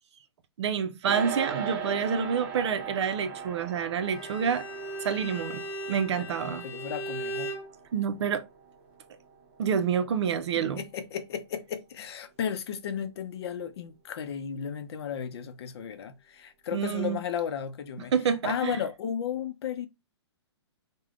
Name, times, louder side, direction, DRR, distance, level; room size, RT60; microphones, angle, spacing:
voice 1, 0.6-4.6 5.0-5.6 5.9-6.6 7.9-8.4 9.6-10.8 16.7-17.2 18.1-18.8, right 7 dB, 70° right, 0.5 m, -28 dB
sound 1, 1.0-10.5, right 6 dB, 40° right, 0.8 m, -39 dB
Bowed string instrument, 4.0-7.7, right 1 dB, 30° left, 0.7 m, -37 dB
voice 2, 6.2-7.5 10.6-18.1 18.4-19.9, left 8 dB, 60° left, 0.6 m, -34 dB
3.3 x 2.2 x 2.4 m
hypercardioid pair, 145°, 15 cm